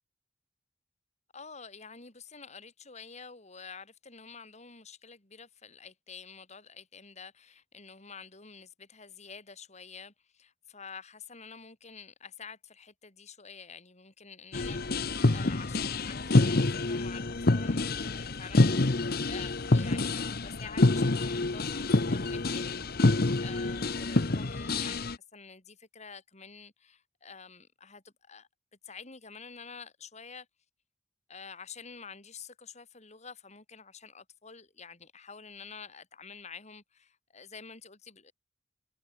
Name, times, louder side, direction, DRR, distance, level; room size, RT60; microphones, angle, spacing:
voice 1, 1.3-22.8 23.4-28.5 28.8-30.5 31.3-38.3, left 5 dB, 40° left, 3.1 m, -48 dB
sound 1, 14.5-25.2, left 2 dB, 55° left, 1.0 m, -27 dB
head